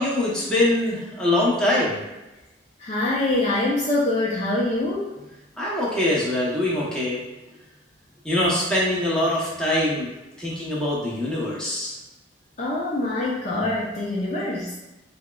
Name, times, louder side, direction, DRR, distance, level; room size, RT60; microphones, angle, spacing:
voice 1, 0.0-2.0 5.6-7.2 8.2-10.1 10.4-12.0, left 1 dB, 5° left, -7 dB, 0.8 m, -23 dB
voice 2, 2.8-5.1 12.6-14.8, left 2 dB, 35° left, -5 dB, 0.5 m, -24 dB
6.1 x 2.1 x 2.3 m, 1.0 s
head